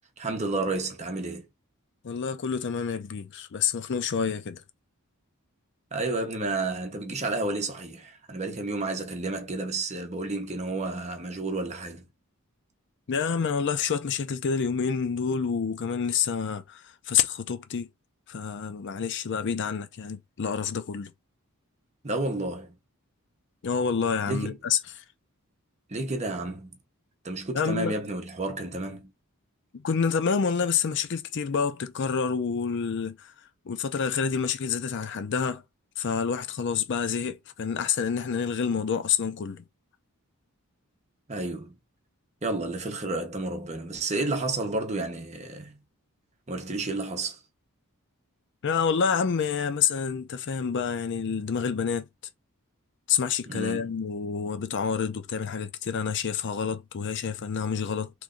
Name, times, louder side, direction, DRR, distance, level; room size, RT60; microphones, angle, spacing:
voice 1, 0.2-1.5 5.9-12.1 22.0-22.8 24.2-24.5 25.9-26.8 27.2-29.1 41.3-41.8 42.4-45.8 46.5-47.4 53.5-53.9, right 2 dB, 30° right, 0.9 m, -31 dB
voice 2, 2.0-4.6 13.1-17.9 18.3-21.1 23.6-25.0 27.5-27.9 29.7-33.3 33.7-35.6 36.0-39.6 48.6-52.0 53.1-58.1, left 6 dB, 55° left, 0.5 m, -28 dB
3.0 x 2.6 x 3.7 m
head